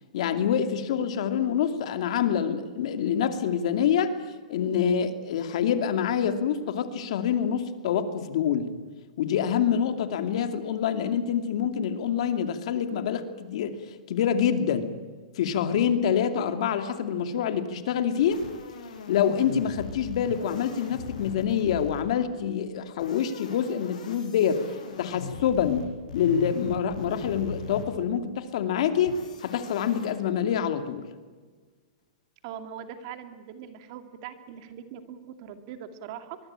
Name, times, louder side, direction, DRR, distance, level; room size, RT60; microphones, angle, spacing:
voice 1, 0.1-4.1 4.5-8.7 9.2-13.8 14.1-14.9 15.4-18.4 19.1-24.6 25.0-25.9 26.1-31.1, left 8 dB, 55° left, 8 dB, 2.5 m, -26 dB
sound 1, 18.2-22.3 22.9-28.1 29.1-30.1, left 5 dB, 90° left, 7.4 m, -40 dB
voice 2, 32.4-36.4, right 9 dB, 40° right, 8 dB, 2.4 m, -41 dB
23.5 x 23.0 x 8.9 m, 1.4 s
hypercardioid pair, 160°, 4 cm